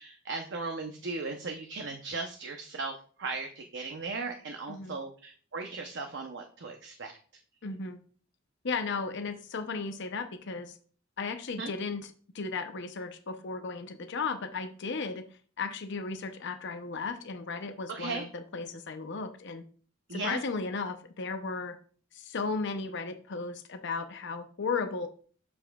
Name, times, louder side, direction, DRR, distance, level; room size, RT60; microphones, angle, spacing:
voice 1, 0.0-7.1 11.6-11.7 17.9-18.3 20.1-20.4, right 3 dB, 65° right, 4 dB, 0.8 m, -37 dB
voice 2, 7.6-8.0 8.6-10.8 11.2-12.1 12.3-15.2 15.6-19.6 20.1-21.8 22.1-25.1, left 4 dB, 65° left, 7 dB, 0.7 m, -35 dB
8.5 x 7.1 x 2.3 m, 0.43 s
head